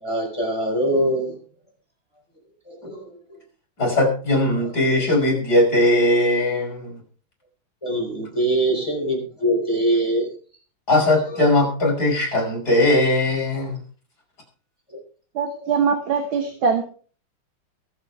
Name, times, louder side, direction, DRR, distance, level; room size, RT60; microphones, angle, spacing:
voice 1, 0.0-1.4 2.7-3.1 7.8-10.3 14.9-15.0, right 1 dB, 10° left, 0 dB, 4.7 m, -23 dB
voice 2, 3.8-7.0 10.9-13.8, left 1 dB, 45° left, -1 dB, 6.1 m, -19 dB
voice 3, 15.4-16.8, right 6 dB, 70° right, 5 dB, 2.1 m, -22 dB
22.5 x 8.0 x 3.4 m, 0.41 s
omnidirectional pair, 2.4 m